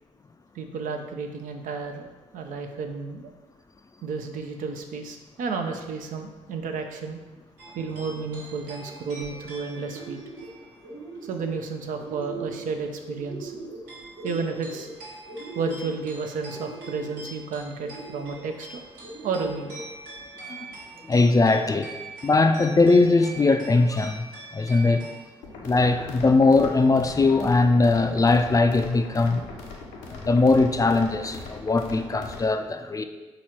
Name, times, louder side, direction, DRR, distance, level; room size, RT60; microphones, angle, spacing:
voice 1, 0.5-2.1 2.3-3.3 4.0-7.2 7.7-10.2 11.2-13.6 14.2-14.9 15.5-18.8 19.2-19.7, right 4 dB, 70° right, 5 dB, 0.5 m, -32 dB
sound 1, 7.6-12.2 12.5-13.3 13.8-25.2, right 2 dB, 85° right, 1.1 m, -44 dB
sound 2, 7.9-8.4 8.8-9.5 9.7-10.5 10.8-11.5 11.9-12.7 13.0-13.8 14.1-14.9 15.3-16.0 16.5-17.2 17.8-18.5 19.0-19.8, right 3 dB, 30° right, 1.4 m, -40 dB
voice 2, 21.1-21.9 22.2-24.2 24.5-25.0 25.6-29.4 30.1-33.0, left 3 dB, 25° left, 8 dB, 0.4 m, -20 dB
sound 3, 25.4-32.4, left 3 dB, 85° left, 0.6 m, -40 dB
3.8 x 3.0 x 4.3 m, 1.2 s
hypercardioid pair, 45°, 14 cm